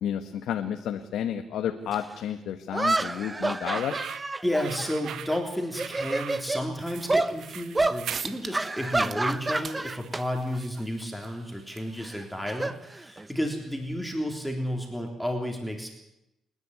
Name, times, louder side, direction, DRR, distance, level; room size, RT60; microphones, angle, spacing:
voice 1, 0.0-3.9, left 9 dB, 80° left, 6 dB, 1.4 m, -31 dB
sound 1, 1.9-2.0 2.7-5.4 5.7-6.6 7.1-7.3 7.7-8.0 8.5-10.2 10.5-10.8 12.0-13.4, right 2 dB, 20° right, 1.0 m, -28 dB
sound 2, 3.4-11.0, right 10 dB, 75° right, 0.9 m, -42 dB
voice 2, 4.4-15.9, equal, ahead, 2 dB, 3.6 m, -32 dB
sound 3, 8.1-8.7 9.0-14.1, right 5 dB, 45° right, 1.8 m, -44 dB
28.0 x 10.5 x 9.5 m, 0.87 s
cardioid pair, 90°, 0 cm